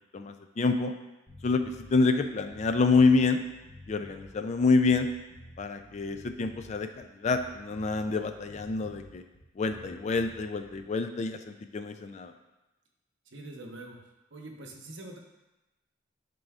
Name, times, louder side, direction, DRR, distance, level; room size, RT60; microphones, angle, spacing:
voice 1, 0.1-0.9 1.4-1.6 1.9-3.4 3.9-5.1 5.6-9.2 9.6-12.3, left 4 dB, 35° left, 7 dB, 0.3 m, -27 dB
sound 1, 1.3-10.9, left 1 dB, 15° left, 1.1 m, -51 dB
voice 2, 13.3-14.0 14.3-15.2, right 2 dB, 70° right, 1 dB, 0.9 m, -44 dB
10.5 x 3.8 x 2.4 m, 1.0 s
head